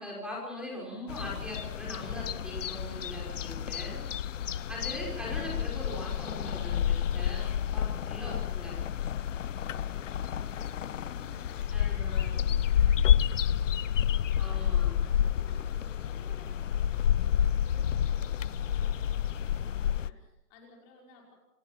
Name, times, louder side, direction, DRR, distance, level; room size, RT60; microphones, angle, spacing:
voice 1, 0.0-4.0 4.7-8.8 11.7-12.4 14.4-14.9, equal, ahead, -3 dB, 5.8 m, -41 dB
sound 1, 1.1-20.1, left 9 dB, 50° left, 0.7 m, -29 dB
voice 2, 3.6-4.2 4.5-4.9 9.4-21.3, left 3 dB, 25° left, -1 dB, 5.7 m, -56 dB
28.0 x 18.5 x 6.1 m, 0.86 s
hypercardioid pair, 155°, 48 cm